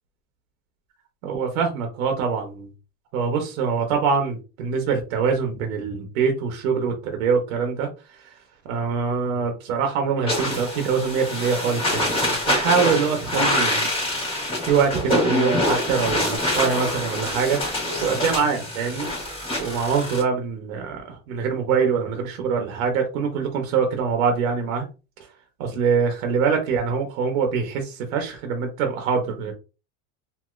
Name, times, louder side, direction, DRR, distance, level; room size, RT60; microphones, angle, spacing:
voice 1, 1.2-2.7 3.1-7.9 8.6-13.9 14.6-17.6 18.0-19.1 19.6-24.9 25.6-29.5, right 6 dB, 85° right, 4 dB, 0.9 m, -24 dB
sound 1, 10.3-20.2, left 1 dB, 15° left, 1.6 m, -25 dB
3.1 x 2.8 x 2.4 m, 0.31 s
supercardioid pair, 145°, 40 cm